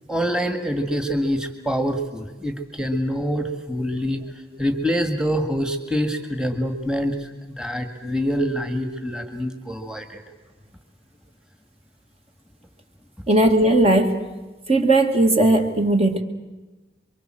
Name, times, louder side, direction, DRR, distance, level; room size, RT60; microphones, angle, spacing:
voice 1, 0.1-4.2 4.6-10.2, equal, 5° right, 5 dB, 1.9 m, -25 dB
voice 2, 13.3-14.2 14.7-16.2, right 2 dB, 35° right, 4 dB, 2.0 m, -17 dB
28.0 x 24.0 x 7.7 m, 1.2 s
head